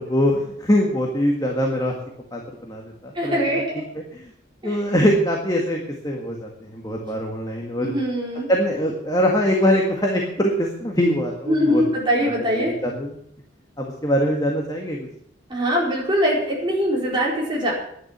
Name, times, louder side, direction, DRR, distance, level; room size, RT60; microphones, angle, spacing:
voice 1, 0.0-2.0 2.3-3.6 4.0-4.3 4.6-7.9 8.5-11.8 12.2-13.2 13.8-15.1, equal, 20° left, 0 dB, 1.7 m, -23 dB
voice 2, 3.1-3.8 4.6-4.8 7.8-8.5 11.5-12.7 15.5-17.7, equal, 25° right, -3 dB, 4.6 m, -22 dB
11.0 x 10.0 x 8.2 m, 0.71 s
head